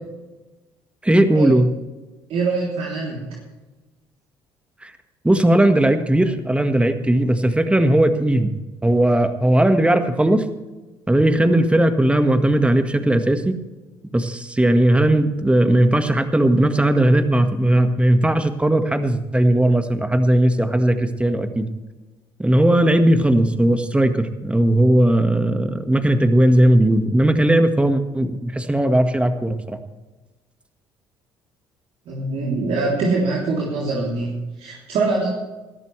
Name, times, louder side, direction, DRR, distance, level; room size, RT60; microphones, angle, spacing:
voice 1, 1.0-1.7 4.8-4.9 5.2-8.5 8.8-10.4 11.1-13.6 14.1-21.7 22.4-29.8, right 1 dB, 10° right, 7 dB, 1.7 m, -17 dB
voice 2, 2.3-3.4 32.0-35.3, right 3 dB, 65° right, -4 dB, 3.4 m, -23 dB
19.0 x 13.5 x 3.3 m, 1.1 s
hypercardioid pair, 60°, 11 cm